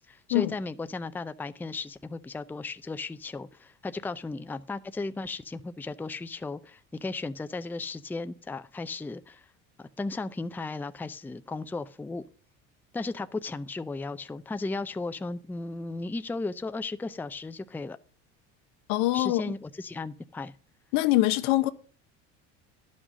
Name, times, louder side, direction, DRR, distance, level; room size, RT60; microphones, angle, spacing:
voice 1, 0.0-9.4 9.8-12.2 12.9-18.0 19.1-20.5, left 3 dB, 5° left, 0.5 m, -35 dB
voice 2, 18.9-19.5 20.9-21.7, left 17 dB, 75° left, 1.0 m, -24 dB
11.0 x 6.3 x 6.2 m
supercardioid pair, 100°, 36 cm